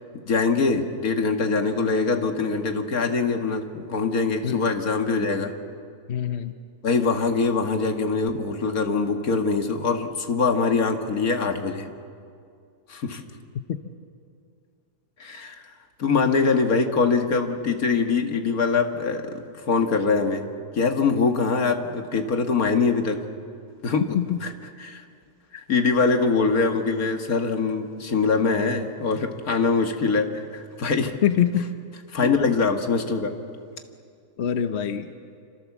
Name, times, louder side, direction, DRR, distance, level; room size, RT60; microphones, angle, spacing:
voice 1, 0.3-5.5 6.8-11.9 12.9-13.2 15.2-15.6 16.0-20.5 20.7-23.3 23.8-24.2 24.4-24.5 24.8-25.0 25.7-31.1 32.1-33.3, left 4 dB, 70° left, 5 dB, 2.1 m, -23 dB
voice 2, 6.1-6.5 13.7-13.8 24.1-24.4 25.5-25.6 31.2-31.7 32.2-32.3 34.4-35.1, left 9 dB, 50° left, 9 dB, 1.1 m, -24 dB
27.5 x 26.5 x 7.3 m, 2.3 s
omnidirectional pair, 1.6 m